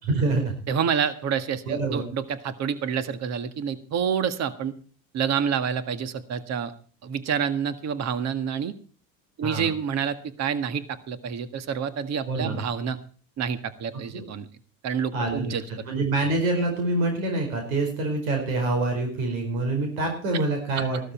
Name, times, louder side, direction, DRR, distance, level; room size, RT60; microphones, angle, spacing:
voice 1, 0.1-0.6 1.7-2.1 9.4-9.7 12.3-12.6 14.1-14.2 15.1-15.5 15.8-21.0, right 2 dB, 90° right, 3 dB, 5.1 m, -26 dB
voice 2, 0.7-4.8 5.1-6.7 7.0-8.7 9.4-13.0 13.4-14.5 14.8-15.6 20.8-20.9, right 7 dB, 40° right, 12 dB, 1.8 m, -28 dB
15.5 x 12.5 x 4.4 m, 0.40 s
supercardioid pair, 115°, 40 cm